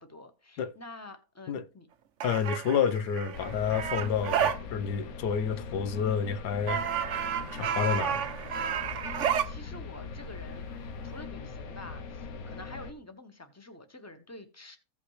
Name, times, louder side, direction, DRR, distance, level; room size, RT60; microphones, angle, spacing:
voice 1, 0.0-1.9 9.0-14.8, left 2 dB, 10° left, 1.0 m, -48 dB
voice 2, 2.2-6.8 7.5-8.3, left 7 dB, 85° left, 1.4 m, -29 dB
sound 1, 2.2-4.6 6.7-9.5, right 8 dB, 55° right, 0.9 m, -30 dB
sound 2, 3.3-12.9, left 4 dB, 65° left, 1.3 m, -41 dB
15.5 x 5.6 x 3.3 m
omnidirectional pair, 1.7 m